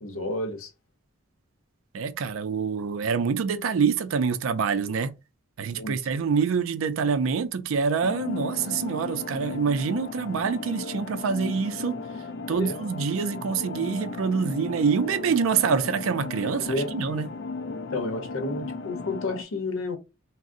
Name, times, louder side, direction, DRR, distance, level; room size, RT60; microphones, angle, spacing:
voice 1, 0.0-0.7 5.7-6.0 12.5-12.8 16.6-16.9 17.7-20.0, left 2 dB, 80° left, 0.7 m, -31 dB
voice 2, 1.9-5.1 5.6-12.0 12.5-17.3, right 6 dB, 70° right, 0.4 m, -26 dB
sound 1, 8.0-19.4, left 4 dB, 55° left, 0.3 m, -36 dB
2.5 x 2.0 x 3.6 m
head